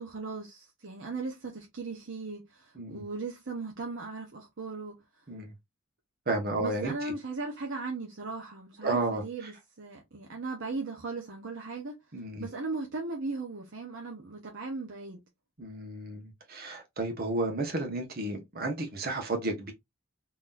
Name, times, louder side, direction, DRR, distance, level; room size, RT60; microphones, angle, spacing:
voice 1, 0.0-4.9 6.5-12.0 12.4-15.2, right 3 dB, 65° right, 0.9 m, -38 dB
voice 2, 6.3-6.9 8.8-9.2 12.1-12.5 15.6-19.7, right 2 dB, 50° right, 1.2 m, -32 dB
3.8 x 3.0 x 2.5 m
head